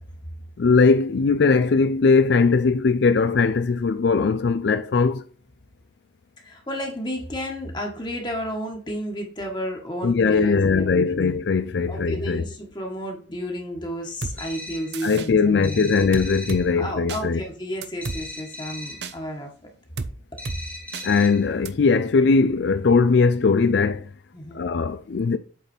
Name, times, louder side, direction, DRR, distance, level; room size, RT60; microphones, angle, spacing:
voice 1, 0.6-5.2 10.0-12.4 15.0-17.4 21.0-24.1 24.5-25.4, left 4 dB, 60° left, 0.4 m, -20 dB
voice 2, 6.4-11.4 11.9-16.1 16.7-19.5 24.3-24.6, equal, 25° left, 1.5 m, -32 dB
sound 1, 14.2-14.4 14.9-15.3 16.1-16.6 17.1-17.2 17.8-18.2 19.0-19.1 20.0-20.1 20.5-20.6 20.9-21.1 21.7-21.8, right 4 dB, 60° right, 0.7 m, -31 dB
sound 2, 14.4-15.0 15.6-16.7 18.0-19.1 20.4-21.5, left 2 dB, 10° left, 1.0 m, -38 dB
8.3 x 4.1 x 4.4 m
head